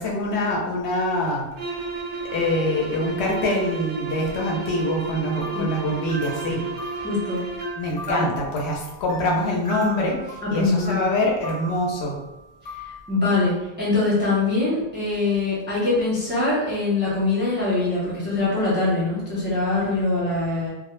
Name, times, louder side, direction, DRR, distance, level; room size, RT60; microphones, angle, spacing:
voice 1, 0.0-1.5 2.3-6.6 7.8-12.2, left 1 dB, 75° left, -2 dB, 0.9 m, -24 dB
sound 1, 1.5-7.9, right 3 dB, 60° right, 0.6 m, -32 dB
sound 2, 5.4-13.0, right 1 dB, 50° left, 0.8 m, -39 dB
voice 2, 7.0-7.4 8.1-8.2 10.4-11.1 13.1-20.7, left 3 dB, 15° right, -7 dB, 0.4 m, -23 dB
2.1 x 2.0 x 3.0 m, 0.97 s
omnidirectional pair, 1.1 m